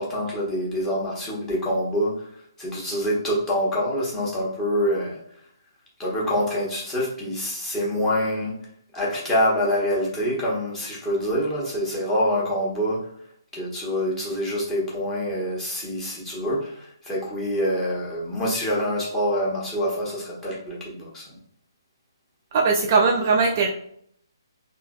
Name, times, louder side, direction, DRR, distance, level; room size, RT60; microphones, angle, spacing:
voice 1, 0.0-2.3 2.6-5.2 6.0-8.6 8.9-13.1 13.5-21.3, equal, 10° left, -6 dB, 1.0 m, -26 dB
voice 2, 22.5-23.7, right 4 dB, 30° right, 2 dB, 0.3 m, -19 dB
3.1 x 2.8 x 2.3 m, 0.68 s
figure-of-eight pair, 135°, 2 cm